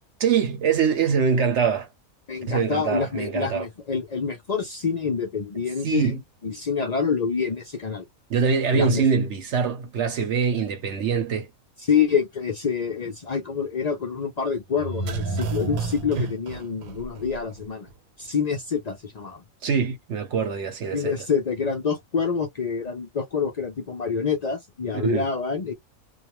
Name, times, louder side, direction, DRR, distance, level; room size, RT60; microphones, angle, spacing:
voice 1, 0.2-1.9 2.5-3.6 5.8-6.2 8.3-11.5 16.2-16.3 19.6-21.1 25.0-25.3, right 6 dB, 60° right, 0.9 m, -23 dB
voice 2, 2.3-8.1 8.7-9.2 11.8-17.9 18.2-19.4 20.9-25.7, left 6 dB, 70° left, 0.4 m, -27 dB
sound 1, 14.8-17.6 17.9-18.0, right 3 dB, 85° right, 1.1 m, -31 dB
2.3 x 2.2 x 3.0 m
omnidirectional pair, 1.5 m